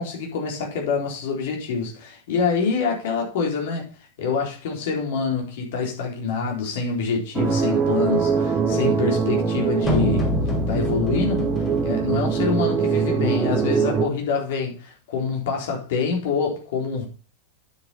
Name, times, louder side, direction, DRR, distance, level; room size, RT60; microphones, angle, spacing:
voice 1, 0.0-3.8 4.2-10.3 10.7-17.1, left 5 dB, 55° left, 3.8 m, -26 dB
sound 1, 7.3-14.1, right 6 dB, 20° right, 1.4 m, -23 dB
sound 2, 9.8-13.9, equal, 20° left, 3.4 m, -27 dB
9.3 x 8.4 x 4.2 m
figure-of-eight pair, 90°, 0 cm